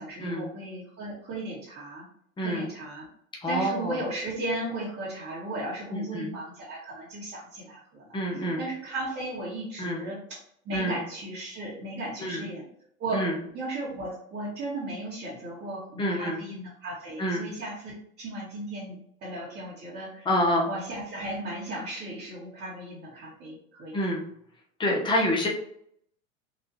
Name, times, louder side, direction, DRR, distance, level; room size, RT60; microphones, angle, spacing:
voice 1, 0.0-2.0 2.4-3.1 3.5-12.6 13.0-13.3 13.5-20.3 20.7-24.0, right 1 dB, 35° right, -8 dB, 1.4 m, -36 dB
voice 2, 2.4-2.7 3.4-4.0 5.9-6.3 8.1-8.6 9.8-10.0 10.7-11.0 12.2-12.5 13.1-13.4 16.0-16.4 17.2-17.4 20.2-20.7 23.9-24.3 24.8-25.5, equal, 10° left, -1 dB, 0.9 m, -27 dB
4.1 x 2.7 x 2.8 m, 0.68 s
hypercardioid pair, 100°, 42 cm